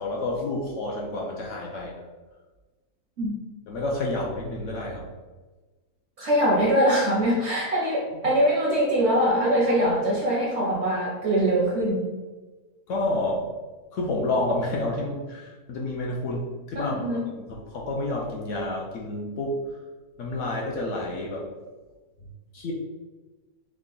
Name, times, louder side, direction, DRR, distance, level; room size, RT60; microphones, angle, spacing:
voice 1, 0.0-1.9 3.7-5.0 8.2-8.3 12.9-13.5 13.9-19.6 20.2-21.5 22.5-22.7, left 2 dB, 70° left, -2 dB, 0.8 m, -29 dB
voice 2, 6.2-12.0 16.8-17.2, right 1 dB, 65° right, -3 dB, 0.7 m, -23 dB
3.6 x 2.1 x 3.7 m, 1.3 s
omnidirectional pair, 1.6 m